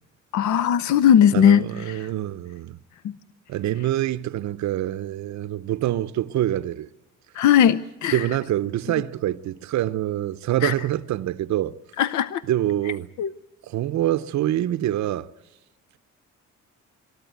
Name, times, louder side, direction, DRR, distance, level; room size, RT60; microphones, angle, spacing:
voice 1, 0.3-2.1 3.0-3.1 7.3-8.3 10.6-10.7 12.0-12.4 13.2-13.3, left 9 dB, 70° left, 0.6 m, -19 dB
voice 2, 1.3-2.8 3.5-6.9 8.1-11.7 12.5-13.1 13.6-15.3, right 13 dB, 65° right, 0.6 m, -25 dB
23.0 x 13.5 x 9.3 m
cardioid pair, 90°, 30 cm